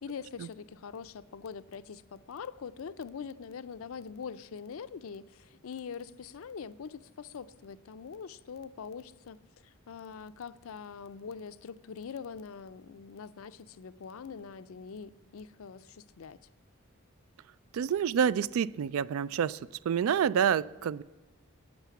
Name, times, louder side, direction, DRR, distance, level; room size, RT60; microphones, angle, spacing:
voice 1, 0.0-16.4, left 6 dB, 80° left, 0.4 m, -43 dB
voice 2, 17.7-19.6 19.8-21.0, right 8 dB, 85° right, 0.3 m, -28 dB
11.5 x 9.1 x 6.0 m
head